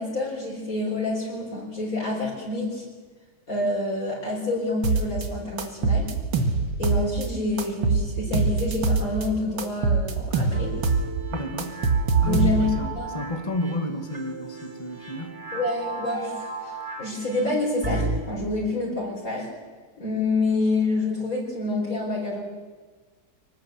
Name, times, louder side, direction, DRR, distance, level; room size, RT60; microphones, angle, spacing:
voice 1, 0.0-2.8 3.5-6.1 6.8-10.7 12.3-12.7 13.0-13.2 15.5-19.5 20.0-22.4, left 2 dB, 45° left, -4 dB, 4.9 m, -27 dB
sound 1, 4.8-5.3 5.6-7.3 7.6-9.3 9.6-11.1 11.3-12.8, right 4 dB, 75° right, 2.5 m, -23 dB
sound 2, 10.5-18.2, right 3 dB, 35° right, 3.6 m, -35 dB
voice 2, 11.3-11.8 12.2-15.4, left 1 dB, 15° left, 4 dB, 2.0 m, -31 dB
24.5 x 19.0 x 7.9 m, 1.4 s
omnidirectional pair, 2.1 m